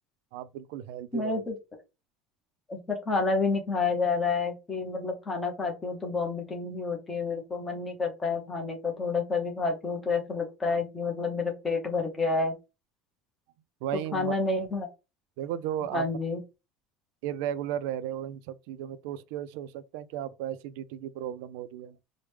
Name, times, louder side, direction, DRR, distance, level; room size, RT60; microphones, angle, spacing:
voice 1, 0.3-1.4 13.8-14.3 15.4-16.0 17.2-22.0, right 11 dB, 65° right, 0.3 m, -35 dB
voice 2, 1.1-1.5 2.7-12.5 14.1-14.9 15.9-16.4, left 4 dB, 10° left, 0.7 m, -29 dB
4.7 x 2.1 x 3.2 m
cardioid pair, 175°, 0 cm